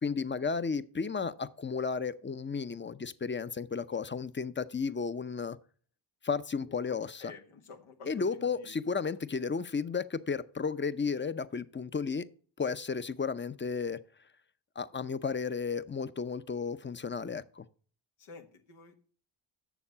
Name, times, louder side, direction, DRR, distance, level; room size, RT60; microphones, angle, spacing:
voice 1, 0.0-5.6 6.2-7.3 8.1-12.2 12.6-14.0 14.8-17.6, left 5 dB, 25° left, 0.6 m, -33 dB
voice 2, 7.2-8.7 18.2-18.9, left 4 dB, 85° left, 1.4 m, -50 dB
7.2 x 6.5 x 5.6 m
supercardioid pair, 50°, 49 cm